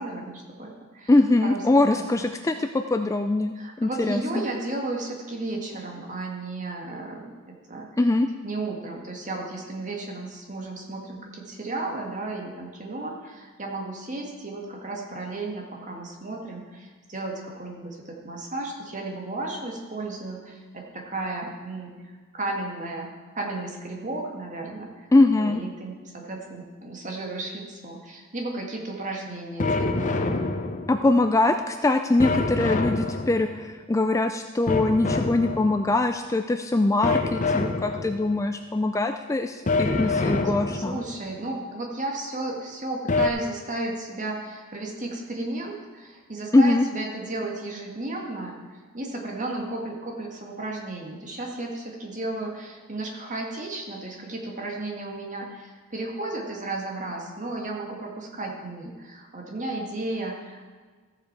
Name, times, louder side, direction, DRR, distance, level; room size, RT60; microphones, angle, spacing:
voice 1, 0.0-1.1 1.4-1.6 1.9-2.3 3.6-7.9 8.4-25.1 25.4-30.2 40.7-60.7, right 2 dB, 35° right, 0 dB, 1.8 m, -34 dB
voice 2, 1.1-4.4 8.0-8.3 25.1-25.6 30.9-41.0 46.5-46.8, left 2 dB, 15° left, 7 dB, 0.3 m, -22 dB
sound 1, 29.6-31.2 32.2-33.7 34.7-36.0 37.0-38.4 39.7-41.2 43.1-43.3, left 3 dB, 35° left, 0.7 m, -26 dB
14.5 x 7.5 x 4.6 m, 1.5 s
head